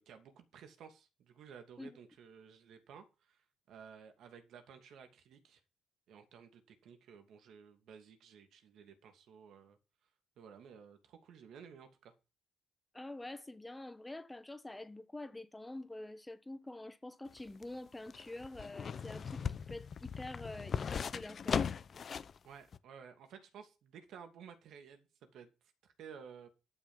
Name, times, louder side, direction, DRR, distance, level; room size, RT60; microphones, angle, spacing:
voice 1, 0.0-5.6 6.1-9.8 10.4-12.1 22.4-25.5 25.8-26.5, right 7 dB, 75° right, 2.6 m, -55 dB
voice 2, 12.9-21.7, left 2 dB, 15° left, 1.3 m, -47 dB
sound 1, 17.3-22.4 22.7-22.8, left 6 dB, 50° left, 0.8 m, -38 dB
11.0 x 6.3 x 7.3 m
cardioid pair, 90°, 0 cm